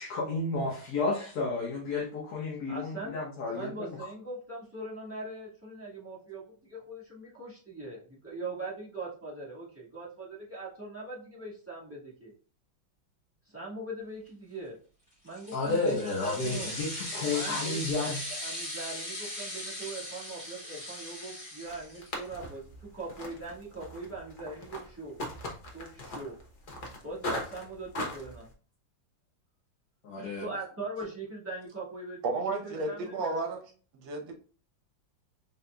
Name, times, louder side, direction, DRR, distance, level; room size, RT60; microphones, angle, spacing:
voice 1, 0.0-3.9 15.5-18.2 30.0-30.4, left 3 dB, 60° left, 1.2 m, -32 dB
voice 2, 2.7-3.2 3.5-12.3 13.5-14.7 15.2-16.7 17.2-17.8 18.3-25.2 25.7-26.3 27.0-28.5 30.1-33.6, right 2 dB, 10° right, 1.2 m, -41 dB
sound 1, 15.3-22.2, left 1 dB, 30° left, 2.3 m, -39 dB
sound 2, 21.7-28.5, left 1 dB, 85° left, 0.4 m, -40 dB
voice 3, 32.2-33.6 33.9-34.3, right 3 dB, 70° right, 1.5 m, -32 dB
4.0 x 3.8 x 2.2 m
omnidirectional pair, 2.2 m